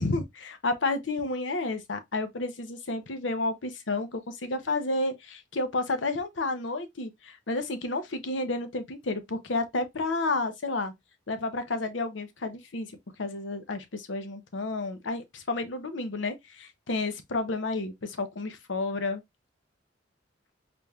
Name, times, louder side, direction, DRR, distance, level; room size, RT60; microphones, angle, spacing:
voice 1, 0.0-10.9 11.3-12.9 13.2-19.2, left 2 dB, 80° left, 0.7 m, -31 dB
4.2 x 3.4 x 2.3 m
head